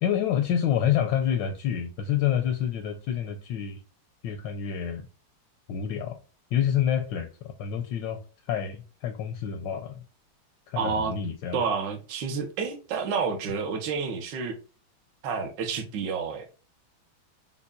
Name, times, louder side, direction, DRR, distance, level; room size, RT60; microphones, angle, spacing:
voice 1, 0.0-3.8 4.2-5.1 5.7-6.2 6.5-8.2 8.5-10.0 10.7-11.6, left 9 dB, 75° left, 1.1 m, -28 dB
voice 2, 10.8-11.1 11.5-14.5 15.2-16.4, right 5 dB, 65° right, 1.4 m, -29 dB
5.3 x 2.2 x 2.3 m
omnidirectional pair, 2.3 m